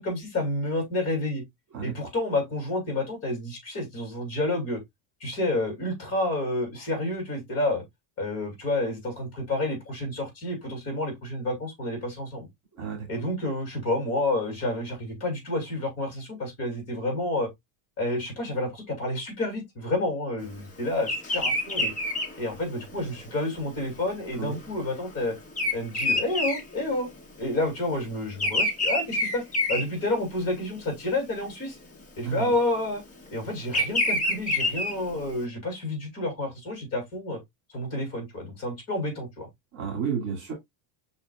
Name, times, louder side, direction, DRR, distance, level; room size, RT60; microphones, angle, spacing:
voice 1, 0.0-1.4 1.8-4.8 5.2-7.8 8.2-12.5 13.1-17.5 18.0-21.9 22.4-25.3 25.7-27.1 27.4-31.8 32.2-33.0 33.3-37.4 37.7-39.5, left 2 dB, 30° left, 2.7 m, -29 dB
voice 2, 12.8-13.1 24.3-24.6 32.2-32.5 39.7-40.5, right 7 dB, 40° right, 2.2 m, -31 dB
Bird vocalization bird call bird song, 21.0-27.5 27.7-30.6 31.1-31.4 32.4-35.4, left 1 dB, 15° left, 1.1 m, -28 dB
5.6 x 4.1 x 2.3 m
cardioid pair, 175°, 46 cm